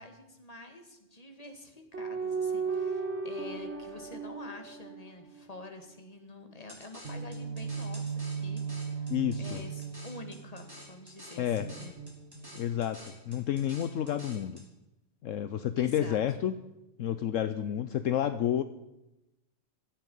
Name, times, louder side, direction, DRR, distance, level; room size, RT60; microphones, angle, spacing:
voice 1, 0.0-9.1 9.4-12.0 15.8-16.2, left 2 dB, 25° left, 5 dB, 2.1 m, -47 dB
sound 1, 1.9-5.6 7.0-10.8 11.6-12.8, right 5 dB, 55° right, 2.1 m, -36 dB
sound 2, 6.7-14.7, equal, 15° right, 3.6 m, -51 dB
voice 2, 9.1-9.6 11.4-11.7 12.5-14.6 15.2-16.5 17.0-18.6, left 10 dB, 70° left, 11 dB, 1.0 m, -30 dB
16.5 x 13.0 x 5.5 m, 0.92 s
omnidirectional pair, 1.4 m